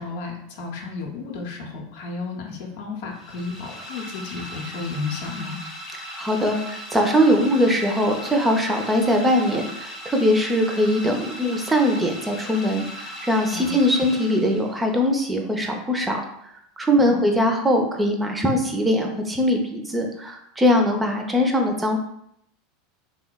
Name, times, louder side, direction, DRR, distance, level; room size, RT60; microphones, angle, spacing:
voice 1, 0.0-5.6 13.5-13.8 16.9-17.2, left 4 dB, 60° left, 1 dB, 0.5 m, -32 dB
sound 1, 3.1-15.0, equal, 30° left, 0.8 m, -38 dB
voice 2, 6.2-16.2 16.8-22.0, equal, 15° right, 3 dB, 0.4 m, -21 dB
3.2 x 2.0 x 2.2 m, 0.73 s
figure-of-eight pair, 80°, 0 cm